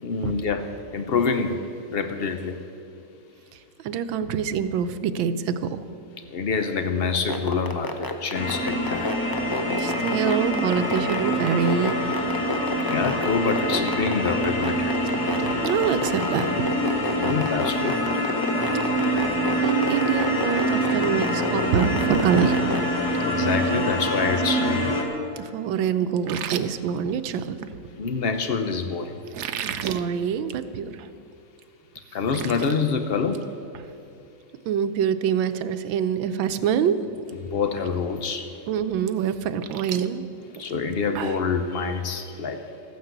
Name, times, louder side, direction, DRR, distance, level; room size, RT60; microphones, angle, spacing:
voice 1, 0.0-2.6 6.3-9.2 12.8-15.0 17.2-18.1 23.2-25.0 28.0-29.2 32.1-33.5 37.4-38.6 40.6-42.7, left 5 dB, 85° left, 7 dB, 0.5 m, -26 dB
voice 2, 3.8-5.8 9.8-12.0 15.4-16.7 19.6-22.7 25.4-27.6 29.6-30.9 34.7-37.0 38.7-40.3, right 8 dB, 85° right, 11 dB, 1.5 m, -25 dB
sound 1, 7.1-22.8, left 2 dB, 30° left, 0.3 m, -29 dB
sound 2, 8.3-25.0, equal, 55° left, 2.2 m, -25 dB
sound 3, 26.2-27.7 29.2-30.0 30.4-30.6 31.0-31.1 31.6-31.7 32.0-32.7 33.1-33.4 33.7-33.9 35.7-35.8 36.3-36.6 36.8-37.3 37.8-37.9 39.2-41.5, right 9 dB, 65° right, 1.1 m, -35 dB
14.0 x 9.7 x 8.0 m, 2.8 s
omnidirectional pair, 2.1 m